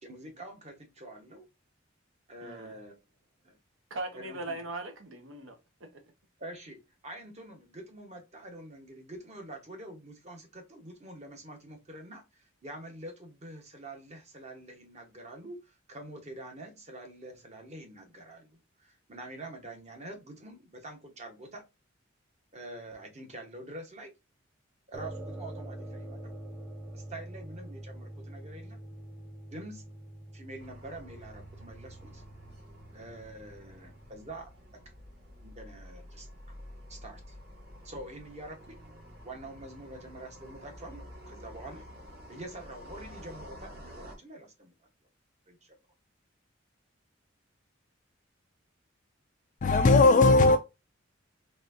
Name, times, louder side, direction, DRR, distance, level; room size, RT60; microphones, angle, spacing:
voice 1, 0.0-1.5 2.3-3.0 3.4-3.6 4.1-4.6 6.4-21.6 22.5-24.1 24.9-26.3 26.9-28.8 29.5-29.8 30.3-32.2 32.9-34.5 35.4-36.6 36.9-37.4 37.8-38.8 39.2-41.9 42.3-44.9 45.5-45.8, right 1 dB, 35° right, 1.1 m, -46 dB
voice 2, 2.4-2.8 3.9-6.0, right 2 dB, 80° right, 1.2 m, -40 dB
sound 1, 24.9-34.1, right 1 dB, 15° right, 1.1 m, -45 dB
sound 2, 30.6-44.2, equal, 55° right, 2.6 m, -50 dB
voice 3, 49.6-50.6, left 3 dB, 40° left, 0.3 m, -18 dB
4.1 x 3.4 x 2.6 m
head